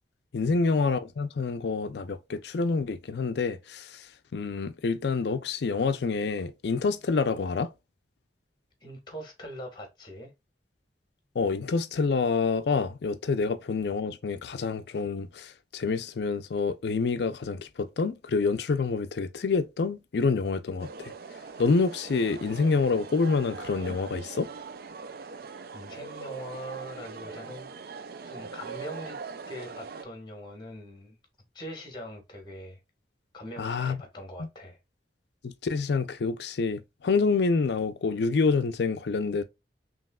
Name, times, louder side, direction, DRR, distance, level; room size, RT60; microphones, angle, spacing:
voice 1, 0.3-4.0 4.3-7.7 11.4-20.9 21.6-24.5 33.6-34.0 35.4-39.4, left 4 dB, 65° left, 0.4 m, -27 dB
voice 2, 8.8-10.3 25.1-25.3 25.7-27.7 28.2-29.2 29.5-31.2 31.5-32.8 33.3-34.8, equal, 25° left, 1.3 m, -42 dB
sound 1, 20.8-30.0, right 5 dB, 55° right, 0.4 m, -41 dB
5.3 x 2.9 x 2.2 m
head